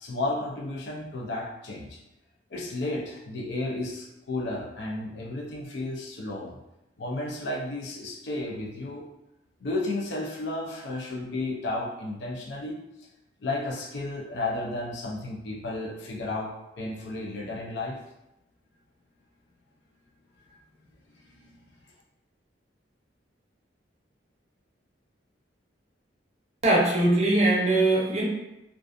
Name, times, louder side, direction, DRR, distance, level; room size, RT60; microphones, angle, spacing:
voice 1, 0.0-2.0 2.5-6.5 7.0-9.1 9.6-12.8 13.4-16.5 16.8-18.0 21.2-21.7, left 2 dB, 70° left, -2 dB, 0.4 m, -33 dB
voice 2, 26.6-28.2, right 2 dB, 35° right, -3 dB, 0.6 m, -21 dB
2.5 x 2.3 x 2.5 m, 0.90 s
head